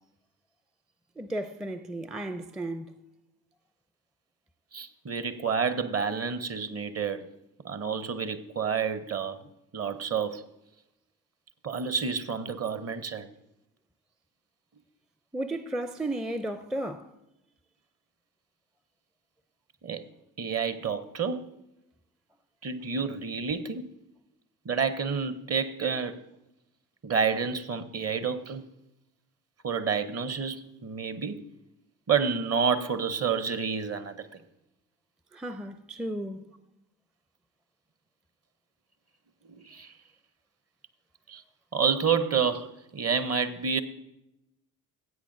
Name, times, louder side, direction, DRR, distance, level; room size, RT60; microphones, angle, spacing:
voice 1, 1.2-2.9 15.3-17.1 35.3-36.5, right 1 dB, ahead, 0.4 m, -34 dB
voice 2, 4.7-7.3 7.6-9.4 9.7-10.4 11.6-13.3 19.8-20.0 20.4-21.4 22.6-23.9 24.6-26.2 27.0-28.6 29.6-31.4 32.1-34.4 39.4-39.9 41.3-41.4 41.7-43.8, right 6 dB, 35° right, 0.8 m, -29 dB
15.5 x 8.4 x 2.6 m
hypercardioid pair, 50°, 42 cm